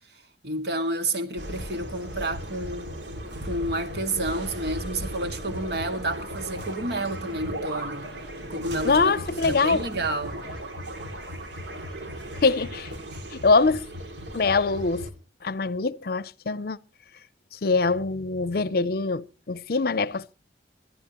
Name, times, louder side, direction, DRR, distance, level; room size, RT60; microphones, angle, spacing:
voice 1, 0.4-2.9 3.4-8.1 8.4-9.2 9.5-10.4 13.1-13.2, right 1 dB, 65° right, 2.1 m, -30 dB
sound 1, 1.4-15.1, right 1 dB, 85° right, 2.5 m, -36 dB
voice 2, 8.8-9.8 12.4-12.9 13.3-13.9 14.3-15.1 15.4-16.8 17.6-20.3, left 4 dB, 55° left, 0.6 m, -23 dB
21.5 x 13.0 x 3.0 m
head